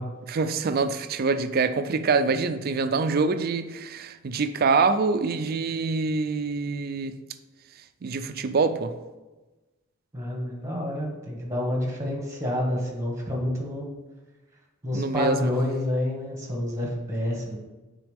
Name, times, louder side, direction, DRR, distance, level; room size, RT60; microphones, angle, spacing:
voice 1, 0.3-7.2 8.0-8.9 14.9-15.5, right 4 dB, 50° right, 0.4 m, -25 dB
voice 2, 10.1-13.9 14.8-17.6, left 1 dB, 15° right, 1.6 m, -28 dB
9.2 x 4.0 x 3.4 m
head